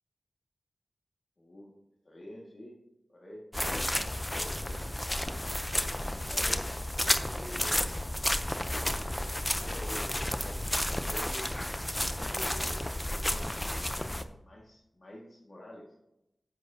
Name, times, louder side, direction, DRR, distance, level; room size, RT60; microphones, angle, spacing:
voice 1, 1.4-1.7 2.0-2.7 3.1-3.4 4.2-4.9 6.0-8.0 9.5-11.4 12.2-16.0, left 1 dB, 45° left, -3 dB, 1.9 m, -48 dB
sound 1, 3.5-14.2, left 1 dB, 15° left, 0.6 m, -32 dB
10.5 x 8.0 x 2.8 m, 0.87 s
wide cardioid pair, 60°, 0 cm